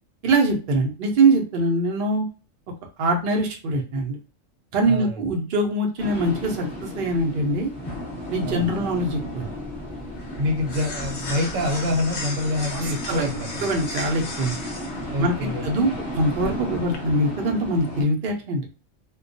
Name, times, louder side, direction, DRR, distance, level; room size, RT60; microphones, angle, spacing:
voice 1, 0.2-2.3 3.0-4.2 4.7-7.7 8.3-9.5 12.7-13.3 13.6-14.6 15.2-15.3 15.6-18.7, right 2 dB, 55° right, 1 dB, 0.6 m, -23 dB
voice 2, 4.8-5.2 8.4-8.7 10.4-13.7 15.1-16.0, left 1 dB, 75° right, 3 dB, 1.1 m, -26 dB
sound 1, 6.0-18.0, left 1 dB, 20° left, 1.0 m, -34 dB
sound 2, 9.2-17.0, left 2 dB, 55° left, 0.7 m, -37 dB
2.2 x 2.2 x 2.5 m, 0.35 s
omnidirectional pair, 1.4 m